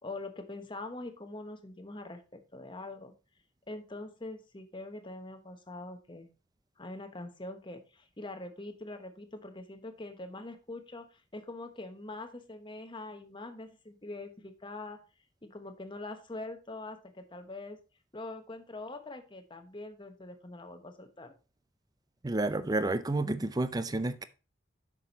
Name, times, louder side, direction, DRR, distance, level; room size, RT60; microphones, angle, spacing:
voice 1, 0.0-3.1 3.7-6.3 6.8-15.0 15.4-17.8 18.1-21.3, left 2 dB, 25° left, 1.1 m, -43 dB
voice 2, 22.2-24.2, right 2 dB, 20° right, 0.5 m, -30 dB
7.4 x 6.2 x 4.0 m
head